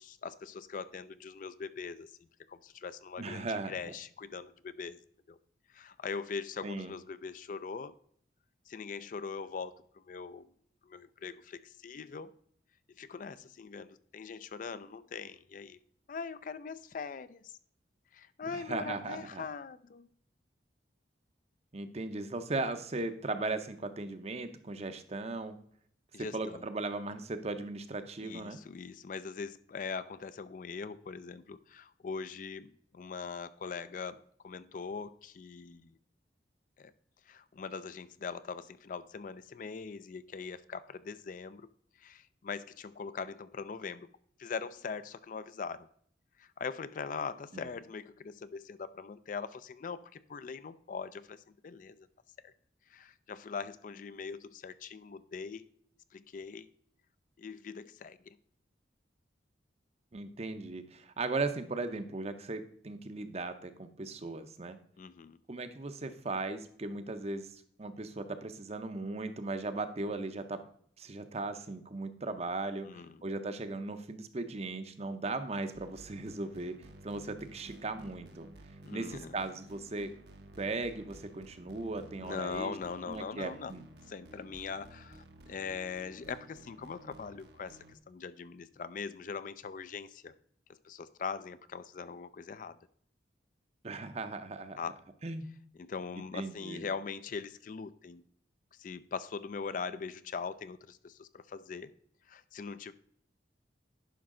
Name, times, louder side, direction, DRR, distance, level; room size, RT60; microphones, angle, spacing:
voice 1, 0.0-5.0 5.3-5.4 5.7-7.9 8.7-10.5 10.8-12.3 13.0-15.8 16.1-17.5 18.1-20.1 26.1-26.7 28.2-35.9 36.8-36.9 37.3-41.7 42.0-44.1 44.4-45.9 46.4-52.1 52.4-52.5 52.9-55.6 56.1-56.7 57.4-58.4 65.0-65.4 72.8-73.2 78.8-79.4 82.2-83.7 84.1-90.3 90.8-92.8 94.8-95.0 95.8-98.2 98.8-101.9 102.3-102.9, left 5 dB, 45° left, 14 dB, 0.4 m, -41 dB
voice 2, 3.2-3.9 6.6-6.9 18.5-19.5 21.7-25.6 26.2-28.6 47.5-47.7 60.1-64.8 65.5-70.6 71.0-76.7 77.0-78.5 78.9-80.1 80.6-82.7 83.1-83.8 93.8-94.8 95.2-95.5 96.3-96.8, right 3 dB, 35° right, 10 dB, 0.7 m, -37 dB
sound 1, 75.7-88.0, right 1 dB, 60° right, 0.9 m, -53 dB
10.0 x 5.6 x 3.7 m, 0.62 s
head